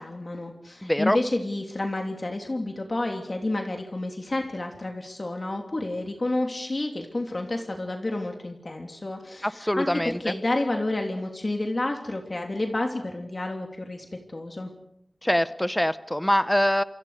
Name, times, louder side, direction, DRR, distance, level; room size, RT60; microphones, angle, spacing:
voice 1, 0.0-14.7, left 2 dB, 45° left, 2 dB, 3.1 m, -30 dB
voice 2, 0.8-1.2 9.4-10.2 15.2-16.8, equal, 10° left, 14 dB, 0.8 m, -24 dB
28.0 x 26.0 x 5.0 m, 0.77 s
wide cardioid pair, 80°, 0 cm